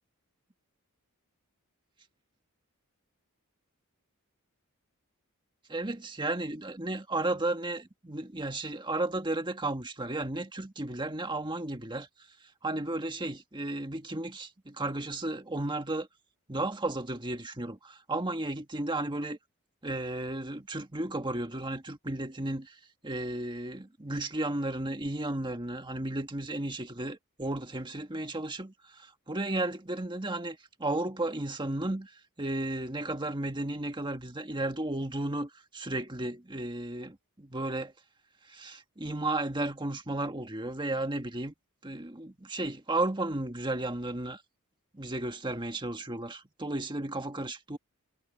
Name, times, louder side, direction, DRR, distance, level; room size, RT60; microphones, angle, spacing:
voice 1, 5.7-12.1 12.4-16.1 16.5-19.4 19.8-37.9 38.5-41.5 41.8-44.4 44.9-47.8, right 2 dB, 20° right, 1.7 m, -34 dB
head